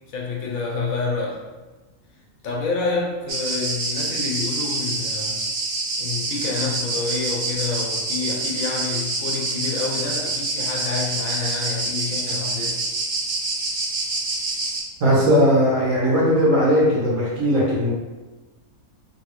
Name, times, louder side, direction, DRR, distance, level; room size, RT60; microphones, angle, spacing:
voice 1, 0.1-1.5 2.4-5.4 6.0-12.8, left 4 dB, 75° left, -2 dB, 1.1 m, -28 dB
sound 1, 3.3-14.8, right 3 dB, 90° right, 1.2 m, -26 dB
voice 2, 15.0-17.9, equal, 60° right, -6 dB, 1.4 m, -18 dB
3.0 x 2.8 x 3.0 m, 1.2 s
omnidirectional pair, 1.5 m